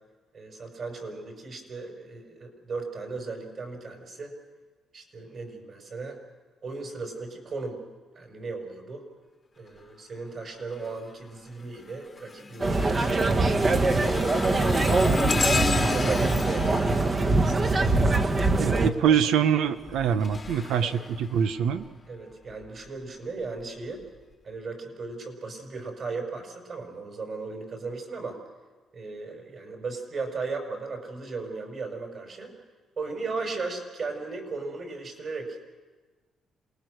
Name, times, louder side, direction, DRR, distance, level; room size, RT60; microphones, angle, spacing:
voice 1, 0.3-4.3 4.9-6.2 6.6-7.8 8.2-9.0 9.6-15.1 15.5-16.8 17.4-19.2 20.8-20.9 22.1-24.0 24.4-28.4 28.9-32.5 33.0-35.7, right 3 dB, 50° right, 3 dB, 5.5 m, -36 dB
sound 1, 10.7-11.1 11.6-18.4 19.7-21.9 22.5-22.7 23.6-23.7, left 4 dB, 30° left, 1.3 m, -33 dB
sound 2, 12.6-18.9, right 2 dB, 35° right, 1.4 m, -23 dB
voice 2, 18.5-21.9, right 8 dB, 85° right, 10 dB, 1.1 m, -24 dB
27.5 x 20.0 x 6.6 m, 1.3 s
cardioid pair, 90°, 0 cm